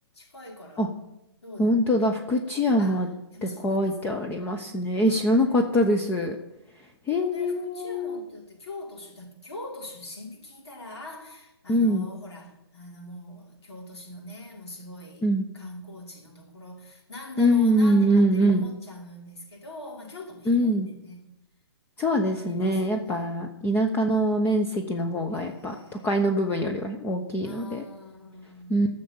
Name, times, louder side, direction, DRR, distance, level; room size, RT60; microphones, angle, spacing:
voice 1, 0.1-0.9 1.4-2.3 2.8-3.0 3.3-4.2 7.1-15.2 15.5-21.3 22.0-23.3 25.3-26.4 27.4-28.8, left 1 dB, 80° left, -2 dB, 4.8 m, -42 dB
voice 2, 1.6-3.1 3.4-6.4 7.1-8.2 11.7-12.1 15.2-15.5 17.4-18.6 20.5-20.9 22.0-27.8 28.7-28.9, equal, 15° left, 3 dB, 0.9 m, -23 dB
13.5 x 6.7 x 7.2 m, 0.89 s
hypercardioid pair, 135°, 14 cm